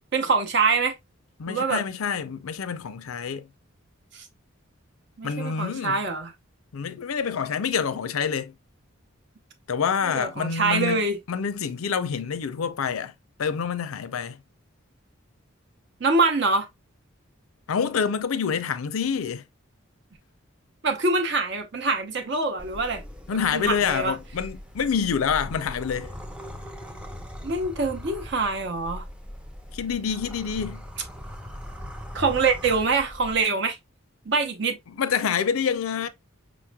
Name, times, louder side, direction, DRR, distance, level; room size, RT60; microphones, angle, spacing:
voice 1, 0.1-0.9 1.5-1.8 4.1-4.3 5.2-6.3 10.1-11.2 16.0-16.7 20.8-23.0 23.5-24.1 27.4-29.0 32.1-33.8 34.3-34.8, right 3 dB, 55° right, 0.8 m, -24 dB
voice 2, 1.4-3.5 5.2-6.0 6.7-8.5 9.7-13.1 13.4-14.4 17.7-19.4 23.3-26.1 29.7-30.8 34.9-36.1, left 6 dB, 90° left, 0.5 m, -27 dB
sound 1, 22.6-33.4, equal, 5° right, 0.5 m, -40 dB
5.3 x 3.1 x 2.2 m
head